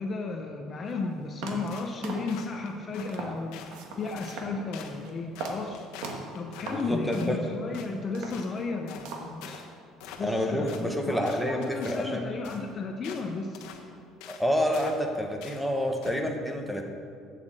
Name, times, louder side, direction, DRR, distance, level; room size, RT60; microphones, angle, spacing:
voice 1, 0.0-3.6 4.0-5.8 6.3-9.6 10.2-13.6, left 3 dB, 25° left, 3 dB, 0.5 m, -34 dB
sound 1, 0.9-1.0 1.4-1.8 2.0-2.6 3.1-3.4 3.7-4.5 4.9-5.1 5.4-5.7 6.0-6.4 6.7-6.9 7.4-7.5 8.0-8.8 9.0-9.4, right 3 dB, 70° right, 1.5 m, -38 dB
sound 2, 1.7-2.0 2.3-3.1 3.5-3.8 4.2-4.5 4.7-5.0 5.3-7.3 7.7-7.9 8.3-8.5 8.9-9.1 9.4-9.7 10.0-10.4 10.7-10.9 11.3-12.1 12.4-12.6 13.0-13.3 13.5-13.8 14.2-14.5 14.7-15.1 15.4-15.6 16.0-16.2, left 7 dB, 70° left, 1.1 m, -45 dB
voice 2, 6.7-7.5 10.2-12.2 14.3-16.8, equal, ahead, 1 dB, 0.8 m, -28 dB
8.1 x 7.8 x 7.7 m, 2.4 s
cardioid pair, 175°, 0 cm